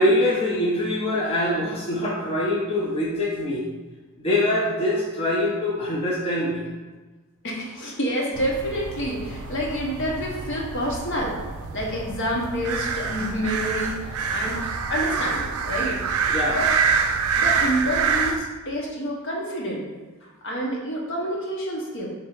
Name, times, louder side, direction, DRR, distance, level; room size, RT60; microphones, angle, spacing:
voice 1, 0.0-3.6 4.2-6.7 16.3-16.6, left 1 dB, 25° left, -5 dB, 0.6 m, -23 dB
voice 2, 7.4-11.4 11.7-16.0 16.5-17.0 17.3-19.8 20.2-22.1, equal, 60° left, -2 dB, 0.9 m, -28 dB
sound 1, 8.3-18.4, right 5 dB, 85° right, 0.4 m, -26 dB
3.6 x 2.7 x 4.4 m, 1.3 s
head